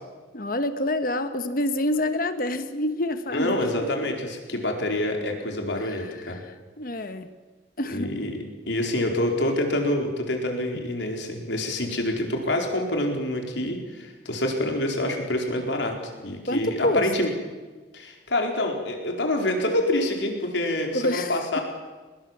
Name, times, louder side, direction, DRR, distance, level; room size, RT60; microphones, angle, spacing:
voice 1, 0.3-3.6 6.4-6.5 6.8-7.3 7.8-8.1 16.5-17.0 20.9-21.6, left 1 dB, 50° left, 10 dB, 1.4 m, -27 dB
voice 2, 3.3-6.4 7.9-15.9 16.2-17.3 17.9-21.6, left 1 dB, 80° left, 2 dB, 4.4 m, -27 dB
23.0 x 21.0 x 7.4 m, 1.3 s
head